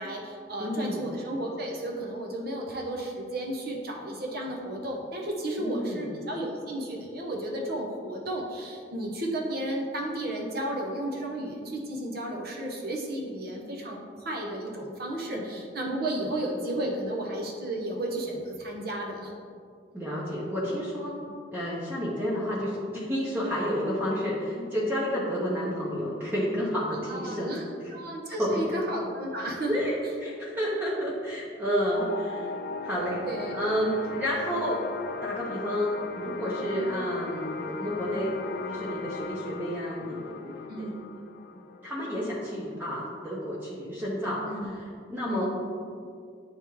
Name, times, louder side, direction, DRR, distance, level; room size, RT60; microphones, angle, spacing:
voice 1, 0.0-19.3 24.5-24.7 26.9-27.7 27.9-29.7 33.3-33.6 36.6-36.9 40.7-41.0 44.5-44.7 45.3-45.5, right 1 dB, 55° right, 0 dB, 0.8 m, -33 dB
voice 2, 0.6-1.2 5.6-6.1 15.3-15.5 16.2-16.3 19.9-21.2 21.5-27.9 28.4-28.8 29.7-32.5 32.8-33.3 33.5-34.8 35.2-38.4 38.6-40.9 41.5-45.5, equal, 10° right, -6 dB, 0.8 m, -30 dB
sound 1, 31.9-42.9, left 4 dB, 50° left, 0.3 m, -39 dB
9.6 x 3.5 x 3.1 m, 2.2 s
head